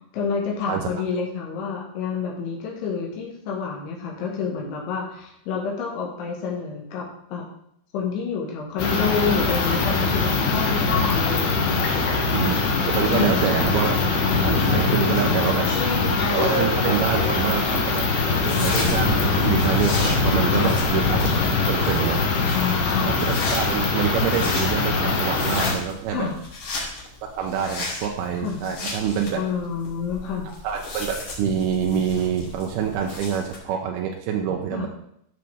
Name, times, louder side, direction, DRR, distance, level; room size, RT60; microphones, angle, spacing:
voice 1, 0.1-7.5 7.9-12.3 13.1-13.4 15.2-15.3 20.5-20.8 22.5-23.2 26.1-26.3 28.4-28.6 29.3-30.5 34.7-34.9, left 5 dB, 85° left, -2 dB, 3.9 m, -28 dB
sound 1, 8.8-25.7, left 4 dB, 65° left, 2.4 m, -22 dB
voice 2, 12.3-14.0 14.4-15.7 16.3-21.3 21.7-22.2 23.0-26.3 27.4-29.4 30.6-34.9, right 8 dB, 80° right, 1 dB, 2.3 m, -26 dB
sound 2, 15.4-33.6, left 2 dB, 45° left, 3.5 m, -33 dB
14.0 x 6.4 x 3.5 m, 0.72 s
omnidirectional pair, 5.2 m